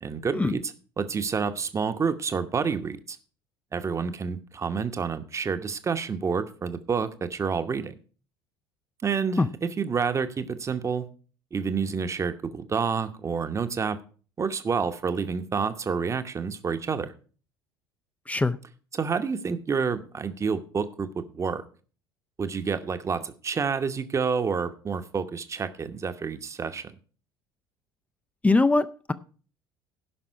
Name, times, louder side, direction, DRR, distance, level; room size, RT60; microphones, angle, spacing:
voice 1, 0.0-3.2 3.7-7.9 9.0-11.1 11.5-14.0 14.4-17.1 18.9-21.6 22.4-26.9, right 5 dB, 25° right, 0.9 m, -29 dB
voice 2, 18.3-18.6 28.4-29.1, left 3 dB, 10° left, 0.5 m, -22 dB
15.5 x 5.9 x 4.5 m
figure-of-eight pair, 60°, 12 cm